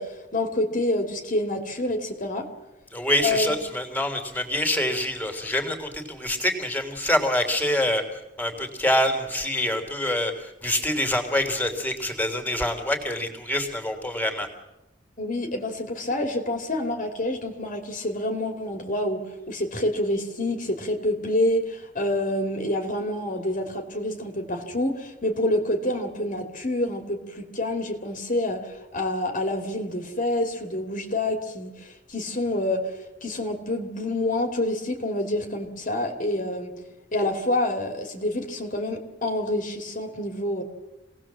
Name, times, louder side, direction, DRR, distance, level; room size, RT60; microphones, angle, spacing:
voice 1, 0.0-2.5 3.2-3.6 15.2-19.2 19.5-32.9 33.2-36.7 37.1-40.6, left 1 dB, 45° left, 4 dB, 2.6 m, -27 dB
voice 2, 2.9-14.5, left 1 dB, 10° left, 5 dB, 3.2 m, -26 dB
27.0 x 18.5 x 7.5 m, 1.0 s
head